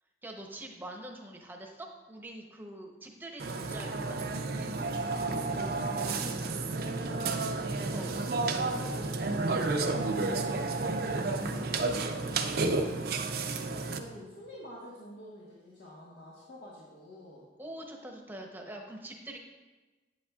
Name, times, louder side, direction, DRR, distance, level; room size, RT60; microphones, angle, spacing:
voice 1, 0.2-4.2 7.9-8.1 12.7-12.9 17.6-19.4, right 1 dB, 10° right, 2 dB, 0.8 m, -44 dB
Burping eructation, 3.4-14.0, right 3 dB, 60° right, 0.5 m, -31 dB
voice 2, 5.1-12.4 13.7-17.5, left 1 dB, 90° left, -5 dB, 1.3 m, -48 dB
8.5 x 8.4 x 2.4 m, 1.2 s
head